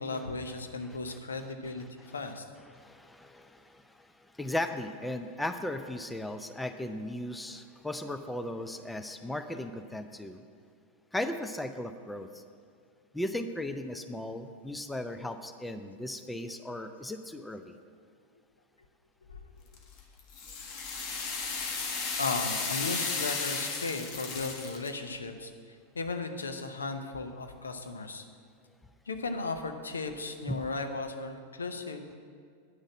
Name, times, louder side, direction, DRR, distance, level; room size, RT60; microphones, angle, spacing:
voice 1, 0.0-2.4 19.3-19.4 22.2-28.2 29.1-32.1, left 3 dB, 70° left, 6 dB, 0.8 m, -36 dB
voice 2, 0.8-1.2 2.7-10.4 11.1-12.4 13.1-17.8 30.5-30.6, left 1 dB, 5° left, 8 dB, 0.5 m, -37 dB
sound 1, 19.7-24.9, left 4 dB, 40° left, 1.4 m, -34 dB
9.3 x 6.4 x 7.4 m, 2.2 s
figure-of-eight pair, 90°, 0 cm